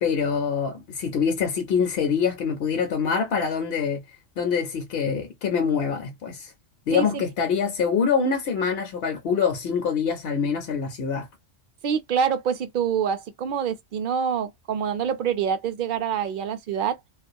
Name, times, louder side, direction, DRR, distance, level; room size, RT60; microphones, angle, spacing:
voice 1, 0.0-4.0 4.4-6.5 6.9-11.3, left 6 dB, 65° left, 0.7 m, -25 dB
voice 2, 6.9-7.2 11.8-17.0, right 7 dB, 60° right, 0.6 m, -26 dB
2.3 x 2.2 x 2.6 m
omnidirectional pair, 1.2 m